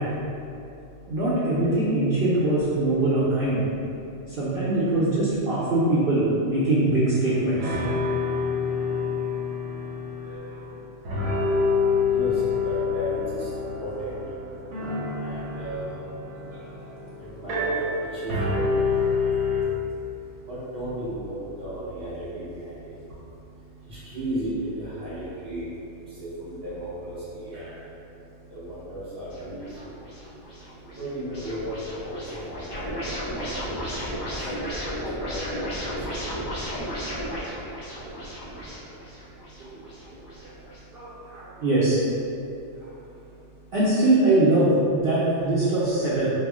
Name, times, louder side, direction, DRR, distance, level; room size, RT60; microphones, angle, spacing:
voice 1, 0.0-1.2 3.7-4.6 7.8-41.6 42.3-43.7, right 1 dB, 5° right, -12 dB, 0.8 m, -38 dB
voice 2, 1.1-3.6 4.4-7.7 10.3-10.5 19.5-19.6 19.9-20.0 40.9-42.0 43.7-46.3, right 2 dB, 60° right, -10 dB, 0.6 m, -22 dB
sound 1, 7.3-7.4 7.6-10.8 11.1-19.6, left 4 dB, 75° right, 1.0 m, -27 dB
sound 2, 29.3-40.8, equal, 35° left, 0.4 m, -34 dB
2.3 x 2.1 x 3.5 m, 2.7 s
omnidirectional pair, 1.3 m